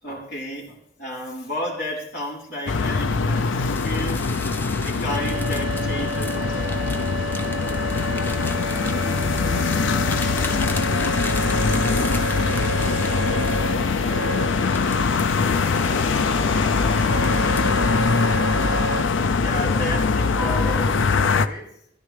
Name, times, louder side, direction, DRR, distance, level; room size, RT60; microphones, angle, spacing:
voice 1, 0.0-4.4 4.8-7.1 8.5-8.7 15.2-15.4 18.8-18.9 19.4-21.8, left 1 dB, 55° left, -5 dB, 3.8 m, -33 dB
sound 1, 2.7-21.5, left 4 dB, 90° left, 0.5 m, -22 dB
sound 2, 3.3-14.1 14.6-17.8 18.3-19.2 19.6-19.9 20.3-20.9, left 2 dB, 10° left, 0.6 m, -38 dB
sound 3, 5.1-19.0, right 4 dB, 80° right, 0.6 m, -32 dB
voice 2, 8.8-8.9, equal, 35° left, -8 dB, 2.2 m, -44 dB
16.5 x 10.5 x 3.3 m, 0.69 s
head